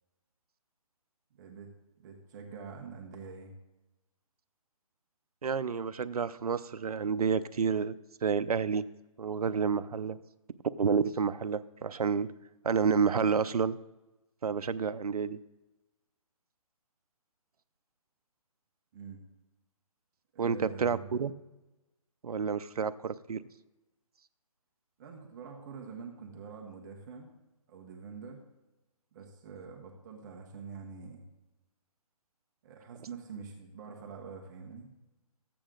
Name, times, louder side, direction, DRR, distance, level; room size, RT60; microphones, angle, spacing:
voice 1, 1.4-1.7 2.0-3.5 18.9-19.2 20.3-21.1 25.0-27.3 27.7-28.4 29.1-31.2 32.6-34.9, right 5 dB, 30° right, 0 dB, 1.4 m, -45 dB
voice 2, 5.4-7.9 8.2-8.9 9.2-10.2 10.8-12.3 12.6-13.8 14.4-15.4 20.4-21.3 22.2-23.4, right 6 dB, 85° right, 14 dB, 0.6 m, -29 dB
14.0 x 8.6 x 3.8 m, 1.0 s
hypercardioid pair, 155°, 19 cm